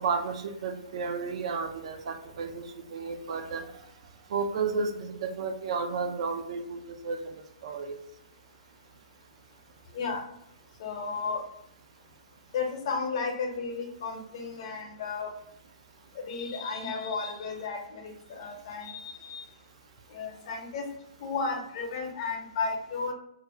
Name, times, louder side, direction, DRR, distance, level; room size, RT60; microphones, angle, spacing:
voice 1, 0.0-3.7 4.3-7.3 7.6-8.0, right 5 dB, 55° right, 7 dB, 0.3 m, -32 dB
voice 2, 9.9-10.2 10.8-11.4 12.5-15.3 16.1-19.5 20.1-20.9 21.2-23.1, left 4 dB, 50° left, 2 dB, 0.7 m, -33 dB
2.5 x 2.0 x 3.7 m, 0.77 s
figure-of-eight pair, 120°, 4 cm